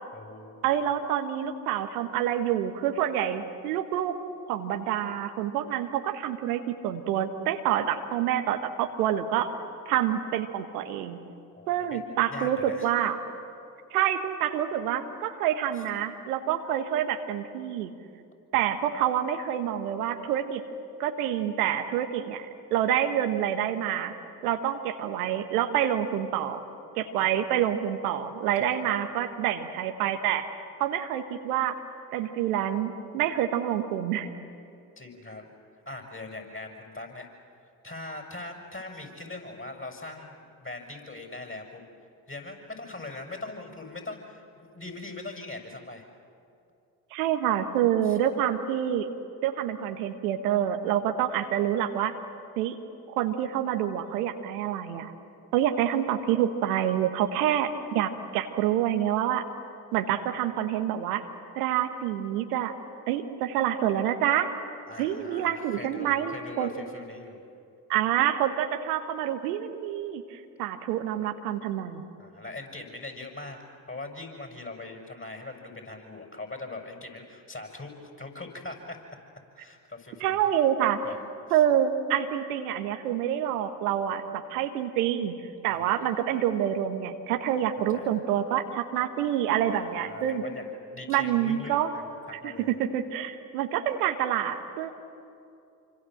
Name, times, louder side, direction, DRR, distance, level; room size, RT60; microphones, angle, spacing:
voice 1, 0.1-0.7 11.6-12.0 12.3-12.9 15.7-15.8 28.6-28.9 35.0-35.5 35.8-37.3 37.8-41.8 42.3-46.1 48.0-48.2 64.9-67.4 72.2-73.6 73.9-79.0 79.5-80.5 81.0-81.2 81.5-81.6 85.7-86.2 87.9-88.1 89.7-92.1 92.4-92.8, left 2 dB, 25° left, 3 dB, 6.7 m, -41 dB
voice 2, 0.6-4.2 4.5-9.5 9.9-11.2 11.7-13.2 13.9-17.9 18.5-20.6 21.0-22.5 22.7-24.1 24.4-26.6 27.0-31.8 32.1-34.3 47.1-49.1 49.4-52.1 52.6-52.8 53.1-55.1 55.5-59.4 59.9-61.2 61.5-62.7 63.1-64.5 65.0-66.7 67.9-72.0 80.2-81.0 81.5-85.3 85.6-90.4 91.1-91.9 92.3-94.9, right 10 dB, 80° right, 7 dB, 1.4 m, -27 dB
27.5 x 25.5 x 7.8 m, 2.6 s
hypercardioid pair, 45°, 44 cm